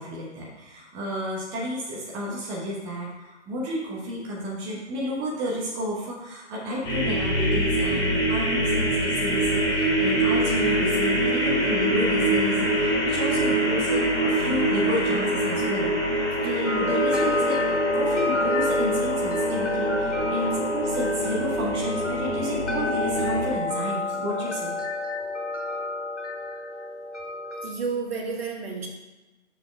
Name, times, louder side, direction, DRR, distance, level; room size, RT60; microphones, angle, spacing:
voice 1, 0.0-24.8 25.7-25.8, equal, 15° right, -5 dB, 0.9 m, -31 dB
sound 1, 6.8-23.5, right 1 dB, 20° left, 1.7 m, -25 dB
sound 2, 16.6-27.7, left 3 dB, 85° left, 1.2 m, -29 dB
voice 2, 27.6-28.9, right 5 dB, 55° right, 1 dB, 1.6 m, -30 dB
6.6 x 4.5 x 4.9 m, 1.1 s
figure-of-eight pair, 135°, 35 cm